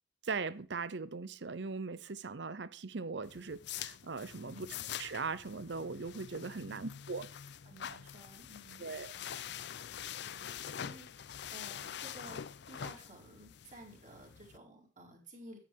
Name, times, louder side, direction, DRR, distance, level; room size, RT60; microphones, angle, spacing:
voice 1, 0.2-4.7 5.0-7.3 8.8-9.1, right 4 dB, 65° right, 0.8 m, -40 dB
sound 1, 3.2-14.6, left 9 dB, 65° left, 0.5 m, -45 dB
voice 2, 4.5-4.8 6.6-7.0 7.6-9.6 10.2-15.6, right 1 dB, 40° right, 4.1 m, -54 dB
9.8 x 9.7 x 3.5 m
head